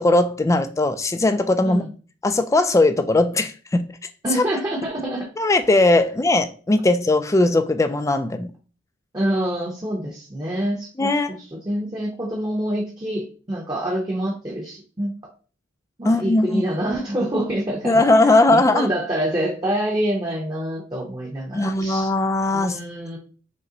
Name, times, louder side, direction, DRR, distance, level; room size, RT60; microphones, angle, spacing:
voice 1, 0.0-1.8 2.2-3.9 4.3-4.4 5.4-8.5 11.0-11.4 16.0-16.6 17.8-18.9 21.5-22.8, left 2 dB, 15° left, 0.3 m, -19 dB
voice 2, 4.2-5.3 9.1-11.1 11.5-15.1 16.0-22.1 22.5-23.2, right 1 dB, 20° right, 0.8 m, -26 dB
5.3 x 2.1 x 3.8 m
head